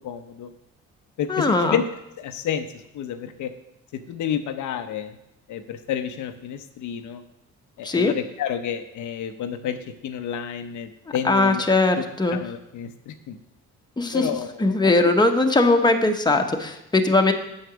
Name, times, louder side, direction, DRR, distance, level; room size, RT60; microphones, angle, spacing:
voice 1, 0.0-0.5 1.2-1.8 2.2-2.7 2.9-3.5 3.9-5.2 5.5-7.2 7.8-9.8 10.0-11.6 12.3-13.4 14.1-14.8 15.7-15.9 17.1-17.2, left 9 dB, 75° left, 7 dB, 0.8 m, -30 dB
voice 2, 1.3-1.8 7.8-8.1 11.2-12.4 14.0-14.2 14.6-17.3, left 2 dB, 15° left, 4 dB, 1.1 m, -20 dB
7.9 x 6.5 x 6.1 m, 0.86 s
cardioid pair, 90°, 30 cm